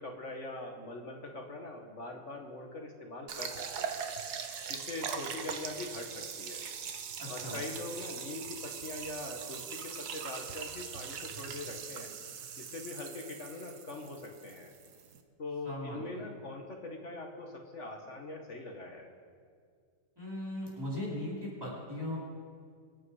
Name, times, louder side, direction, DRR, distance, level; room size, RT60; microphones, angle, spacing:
voice 1, 0.0-4.0 4.7-6.6 7.3-12.1 12.6-14.7 15.4-19.1, left 2 dB, 45° left, 2 dB, 1.6 m, -42 dB
sound 1, 3.3-15.2, right 7 dB, 65° right, 1.4 m, -41 dB
voice 2, 7.2-7.6 15.6-16.2 20.2-22.2, left 1 dB, 10° right, -8 dB, 4.3 m, -38 dB
25.5 x 8.6 x 4.8 m, 2.1 s
omnidirectional pair, 1.9 m